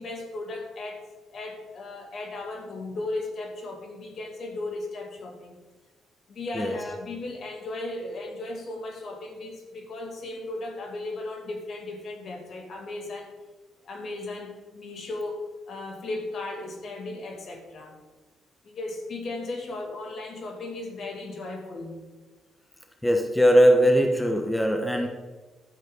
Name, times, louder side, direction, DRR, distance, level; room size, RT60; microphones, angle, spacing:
voice 1, 0.0-5.6 6.3-13.3 13.8-15.4 15.7-18.0 18.6-22.0, left 2 dB, 55° left, 2 dB, 2.4 m, -36 dB
voice 2, 23.0-25.1, equal, 5° left, 3 dB, 1.1 m, -20 dB
12.0 x 8.0 x 4.0 m, 1.3 s
cardioid pair, 90°, 0 cm